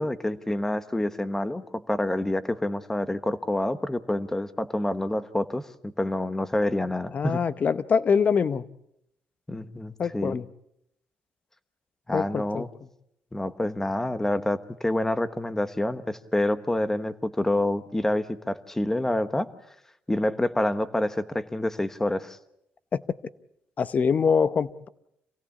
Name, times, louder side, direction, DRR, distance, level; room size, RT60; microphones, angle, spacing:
voice 1, 0.0-7.4 9.5-10.4 12.1-12.7 13.3-19.5 20.1-22.4, left 1 dB, 10° left, 12 dB, 1.2 m, -27 dB
voice 2, 7.1-8.7 10.0-10.4 12.1-12.6 22.9-23.0 23.8-24.9, left 6 dB, 35° left, 15 dB, 0.8 m, -24 dB
27.0 x 17.0 x 8.5 m, 0.79 s
cardioid pair, 130°, 4 cm